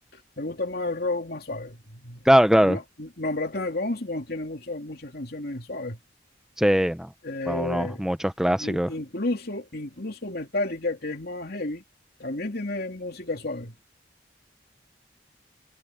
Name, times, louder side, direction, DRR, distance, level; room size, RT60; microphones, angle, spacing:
voice 1, 0.1-2.3 2.6-6.0 7.2-8.0 8.6-11.8 12.2-13.8, left 2 dB, 55° left, 3.0 m, -32 dB
voice 2, 2.3-2.8 6.6-7.1 7.5-8.9, equal, 5° right, 0.5 m, -21 dB
head